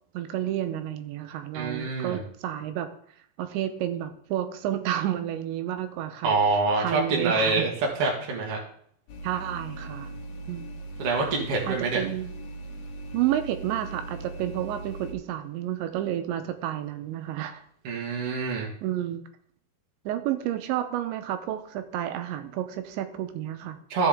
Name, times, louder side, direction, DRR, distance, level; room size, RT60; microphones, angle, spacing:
voice 1, 0.1-2.9 3.4-6.3 6.8-7.7 9.2-10.2 10.5-10.8 11.6-12.3 13.1-17.6 18.8-19.2 20.1-23.8, right 12 dB, 85° right, 8 dB, 3.0 m, -30 dB
voice 2, 1.5-2.2 6.2-7.7 8.0-8.6 11.0-12.0 17.8-18.7 23.9-24.1, right 3 dB, 50° right, -2 dB, 1.8 m, -25 dB
sound 1, 9.1-15.1, right 2 dB, 70° left, 2.7 m, -39 dB
14.5 x 7.2 x 3.6 m, 0.63 s
omnidirectional pair, 5.2 m